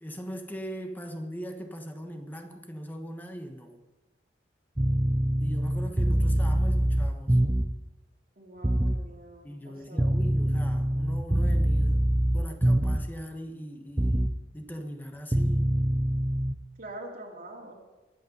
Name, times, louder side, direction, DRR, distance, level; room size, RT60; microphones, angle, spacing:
voice 1, 0.0-3.8 5.4-7.4 9.4-12.1 12.3-15.8, equal, 10° left, 5 dB, 1.2 m, -40 dB
sound 1, 4.8-7.8 8.6-9.0 10.0-13.2 14.0-14.4 15.3-16.5, right 1 dB, 15° right, 0.5 m, -24 dB
voice 2, 8.4-10.2 16.8-17.7, right 1 dB, 50° right, -2 dB, 2.4 m, -44 dB
22.5 x 8.6 x 5.4 m, 1.1 s
head